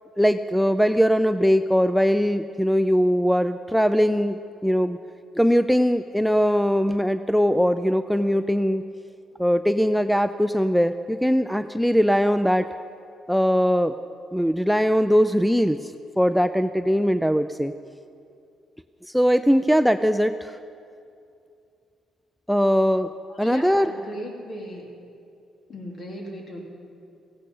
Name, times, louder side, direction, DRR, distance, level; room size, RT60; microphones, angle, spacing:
voice 1, 0.2-5.0 5.3-8.8 9.4-12.7 13.3-14.0 14.3-17.7 19.0-20.6 22.5-23.1 23.4-23.9, equal, ahead, 10 dB, 0.4 m, -21 dB
voice 2, 23.3-24.9 25.7-26.6, equal, 45° left, 0 dB, 3.0 m, -37 dB
16.0 x 15.0 x 5.4 m, 2.5 s
cardioid pair, 90°, 0 cm